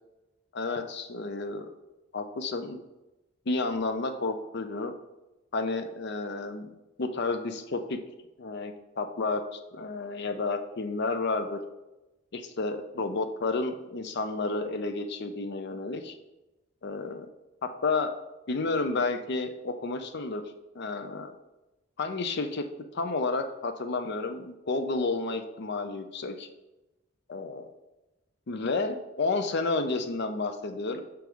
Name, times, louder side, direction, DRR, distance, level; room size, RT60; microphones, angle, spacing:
voice 1, 0.5-1.7 2.1-2.8 3.5-4.9 5.5-6.7 7.0-8.0 8.4-11.6 12.3-16.1 16.8-17.3 17.6-18.1 18.5-20.4 20.7-21.3 22.0-22.6 22.9-26.5 27.3-27.7 28.5-31.0, left 3 dB, 60° left, 7 dB, 0.6 m, -31 dB
5.3 x 4.5 x 6.2 m, 0.99 s
head